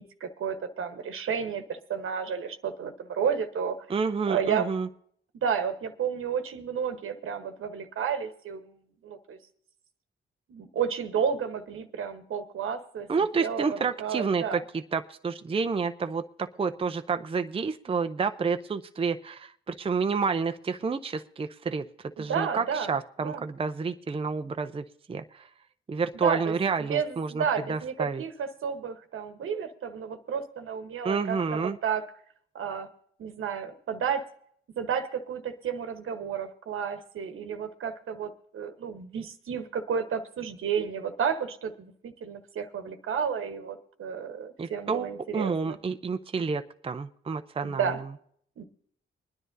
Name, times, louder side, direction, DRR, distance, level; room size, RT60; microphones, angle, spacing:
voice 1, 0.0-3.8 4.3-4.7 5.4-8.7 9.0-9.4 10.5-13.1 13.3-14.6 22.2-22.9 23.2-23.4 26.2-26.5 26.8-32.1 32.5-32.9 33.2-34.3 34.8-45.8 47.6-48.0 48.6-48.7, right 7 dB, 75° right, 8 dB, 1.1 m, -32 dB
voice 2, 3.9-4.9 13.1-14.6 14.9-25.5 25.9-28.2 31.0-31.8 44.6-48.0, right 5 dB, 25° right, 8 dB, 0.5 m, -29 dB
24.5 x 10.0 x 2.7 m, 0.64 s
cardioid pair, 70°, 21 cm